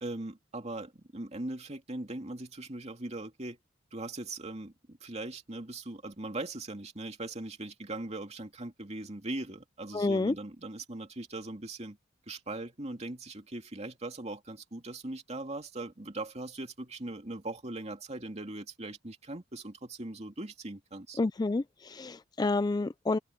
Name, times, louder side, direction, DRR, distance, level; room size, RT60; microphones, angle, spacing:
voice 1, 0.0-3.6 3.9-12.0 12.3-21.2, right 2 dB, 35° right, 2.5 m, -40 dB
voice 2, 9.9-10.3 21.2-23.2, left 3 dB, 20° left, 0.3 m, -29 dB
head